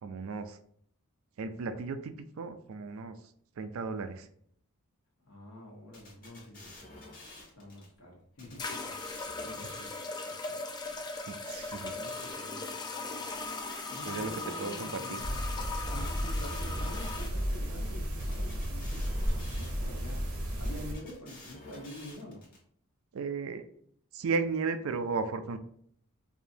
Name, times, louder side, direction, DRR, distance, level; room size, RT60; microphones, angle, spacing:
voice 1, 0.0-0.6 1.4-3.2 3.6-4.3 11.3-11.9 13.7-14.3 14.6-15.2 23.1-23.6 24.1-25.6, right 4 dB, 65° right, 10 dB, 0.4 m, -35 dB
voice 2, 5.2-7.0 7.5-8.9 9.4-10.6 11.9-12.6 13.9-15.4 15.9-19.1 19.5-20.3 20.6-22.4, left 1 dB, 75° left, -2 dB, 1.3 m, -47 dB
sound 1, 5.9-7.9 8.4-10.3 10.8-12.8 13.3-15.2 15.7-17.7 18.2-20.1 20.6-22.6, left 2 dB, 40° left, 1.4 m, -50 dB
sound 2, 7.8-7.9 8.6-17.3, left 3 dB, 20° left, 0.4 m, -39 dB
sound 3, 15.2-20.9, equal, 85° right, 1.0 m, -33 dB
4.8 x 2.6 x 2.7 m, 0.66 s
head